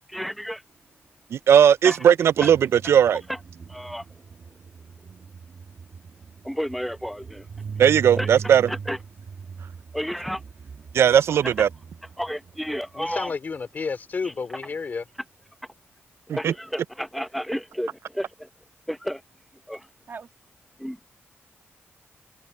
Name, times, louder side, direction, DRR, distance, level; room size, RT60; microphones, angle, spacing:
voice 1, 0.1-0.6 1.8-2.0 2.4-2.5 3.3-3.4 3.7-4.2 5.0-5.1 6.4-7.5 8.2-8.3 8.7-9.0 9.9-10.4 11.4-11.5 12.2-13.3 14.2-14.3 14.6-14.7 16.3-18.5 18.9-19.2 19.5-19.9 20.8-21.0, equal, ahead, 1.1 m, -31 dB
voice 2, 1.3-3.2 7.8-8.7 10.9-11.7 16.3-16.5, right 9 dB, 70° right, 0.4 m, -17 dB
sound 1, 2.0-13.6 19.7-19.8 20.1-20.3, right 5 dB, 45° right, 1.5 m, -40 dB
voice 3, 13.0-15.0, left 5 dB, 40° left, 2.7 m, -31 dB
open air
wide cardioid pair, 135°, 5 cm